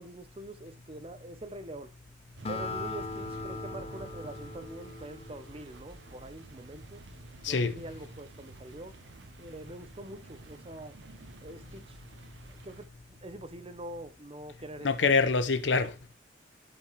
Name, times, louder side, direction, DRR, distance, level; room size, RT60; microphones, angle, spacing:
voice 1, 0.0-1.9 2.5-7.0 7.5-9.0 9.4-11.0 11.4-12.0 12.5-15.1, right 1 dB, 30° right, 0.9 m, -44 dB
Acoustic guitar, 2.4-6.0, left 3 dB, 35° left, 0.8 m, -40 dB
sound 1, 2.4-12.9, right 2 dB, 80° right, 1.1 m, -50 dB
voice 2, 7.4-7.7 14.8-16.1, left 4 dB, 80° left, 0.7 m, -26 dB
12.0 x 5.3 x 3.3 m
head